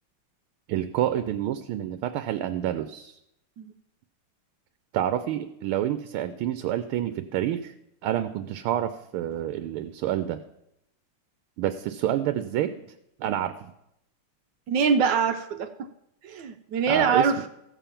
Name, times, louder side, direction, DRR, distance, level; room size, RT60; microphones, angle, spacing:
voice 1, 0.7-3.1 4.9-7.7 8.0-10.4 11.6-12.9 13.2-13.7 16.9-17.3, right 11 dB, 90° right, 10 dB, 1.5 m, -28 dB
voice 2, 14.7-15.9 16.2-17.4, right 6 dB, 70° right, 8 dB, 1.2 m, -24 dB
15.0 x 7.1 x 5.7 m, 0.81 s
omnidirectional pair, 2.3 m